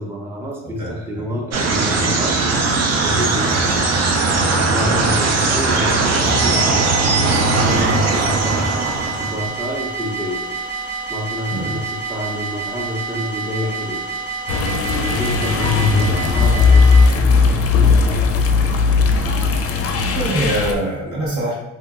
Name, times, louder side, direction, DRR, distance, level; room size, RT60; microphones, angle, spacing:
voice 1, 0.0-2.4 2.8-3.9 4.7-8.6 9.2-10.5 11.1-14.0 14.9-18.2 21.0-21.1, left 1 dB, 10° right, -1 dB, 0.5 m, -28 dB
voice 2, 0.6-1.4 4.8-5.1 11.5-11.8 20.1-21.5, right 1 dB, 75° right, -5 dB, 1.4 m, -25 dB
sound 1, 1.5-9.6, right 3 dB, 60° right, 0.5 m, -18 dB
sound 2, 6.3-17.1, right 4 dB, 40° right, 0.9 m, -28 dB
sound 3, 14.5-20.7, left 4 dB, 50° left, 0.4 m, -16 dB
2.8 x 2.6 x 2.4 m, 0.94 s
cardioid pair, 90°, 30 cm